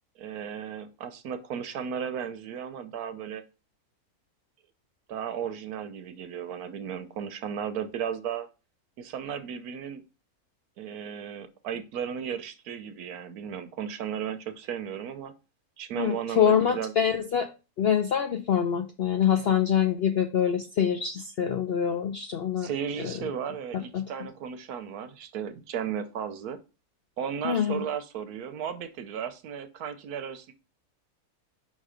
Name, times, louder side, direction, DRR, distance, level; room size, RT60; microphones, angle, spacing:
voice 1, 0.2-3.4 5.1-8.5 9.0-10.0 10.8-15.3 15.8-16.9 22.6-26.6 27.2-30.5, right 8 dB, 80° right, 11 dB, 1.2 m, -35 dB
voice 2, 15.9-17.5 17.8-22.7 23.0-23.1 23.9-24.0 27.4-27.8, left 8 dB, 60° left, 5 dB, 0.7 m, -25 dB
5.4 x 4.2 x 5.0 m, 0.30 s
omnidirectional pair, 1.6 m